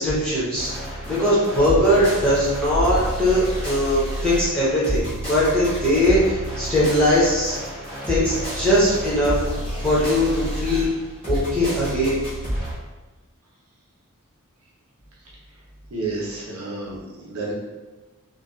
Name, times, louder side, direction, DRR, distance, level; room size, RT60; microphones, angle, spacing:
voice 1, 0.0-7.5 8.1-9.4 9.8-10.9 11.3-12.2, equal, 5° left, -10 dB, 0.7 m, -20 dB
sound 1, 0.5-12.7, equal, 25° left, 1.1 m, -29 dB
voice 2, 15.9-17.0 17.2-17.5, right 3 dB, 70° right, -5 dB, 0.7 m, -30 dB
2.6 x 2.3 x 2.3 m, 1.2 s
head